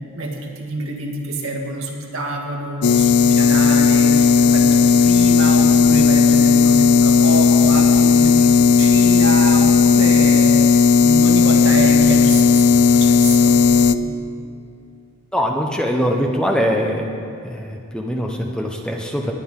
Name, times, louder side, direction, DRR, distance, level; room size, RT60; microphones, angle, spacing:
voice 1, 0.0-10.5 11.0-13.6 14.0-14.1, right 2 dB, 70° right, 1 dB, 1.7 m, -27 dB
sound 1, 2.8-13.9, left 5 dB, 90° left, 0.4 m, -14 dB
voice 2, 15.3-17.1 17.4-19.3, equal, 5° left, 1 dB, 0.7 m, -22 dB
20.0 x 9.3 x 3.7 m, 2.4 s
head